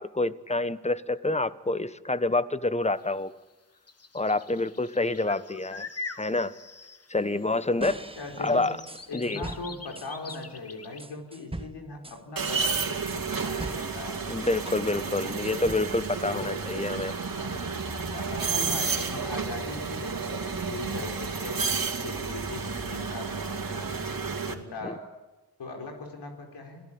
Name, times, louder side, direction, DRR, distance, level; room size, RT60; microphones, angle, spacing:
voice 1, 0.0-3.3 4.1-5.9 6.2-6.5 7.1-8.0 8.4-8.8 9.1-9.5 14.3-17.2 24.8-24.9, left 2 dB, 15° left, 14 dB, 1.3 m, -27 dB
sound 1, 3.0-3.1 3.9-7.6 8.0-11.0, left 4 dB, 35° left, 1.6 m, -43 dB
sound 2, 7.8-10.4 11.0-14.9 15.1-16.2, right 2 dB, 15° right, 1.3 m, -41 dB
voice 2, 8.2-8.6 9.1-14.2 15.2-15.4 16.3-16.6 17.4-17.6 17.9-23.9 24.5-25.1 25.6-26.8, left 3 dB, 85° left, 2 dB, 4.7 m, -40 dB
sound 3, 12.4-24.5, right 5 dB, 55° right, 2.9 m, -31 dB
27.5 x 17.5 x 8.9 m, 1.1 s
cardioid pair, 40°, 40 cm